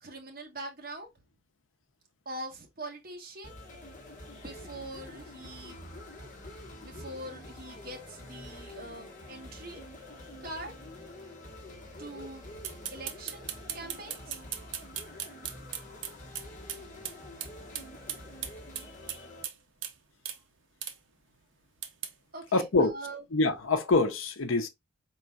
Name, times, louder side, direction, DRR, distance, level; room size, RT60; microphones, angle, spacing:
voice 1, 0.0-1.1 2.2-3.6 4.3-5.8 6.8-9.8 10.4-10.7 12.0-12.5 12.9-14.4 22.3-23.2, right 1 dB, 45° right, 1.2 m, -43 dB
sound 1, 3.4-19.4, left 1 dB, 40° left, 1.3 m, -47 dB
sound 2, 12.6-16.8 17.0-17.2 17.4-17.5 17.7-19.6 19.8-19.9 20.3-20.4 20.8-21.0 21.8-22.1, right 10 dB, 70° right, 0.7 m, -37 dB
voice 2, 22.5-22.9 23.3-24.7, left 3 dB, 85° left, 0.7 m, -25 dB
4.4 x 3.8 x 2.3 m
head